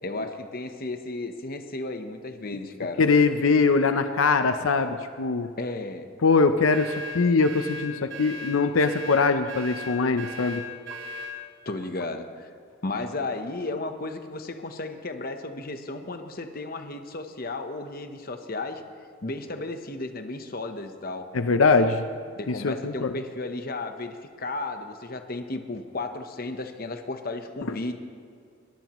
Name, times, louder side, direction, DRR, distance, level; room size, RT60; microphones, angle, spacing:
voice 1, 0.0-3.1 5.6-6.1 11.6-12.5 12.8-18.8 19.2-21.3 22.4-28.0, left 2 dB, 45° left, 7 dB, 0.9 m, -34 dB
voice 2, 3.0-5.5 6.2-10.6 21.3-22.1 22.5-23.1 27.7-27.8, left 4 dB, 80° left, 9 dB, 0.7 m, -22 dB
sound 1, 6.7-11.4, left 1 dB, 60° right, 2.9 m, -37 dB
22.0 x 17.5 x 3.1 m, 2.2 s
head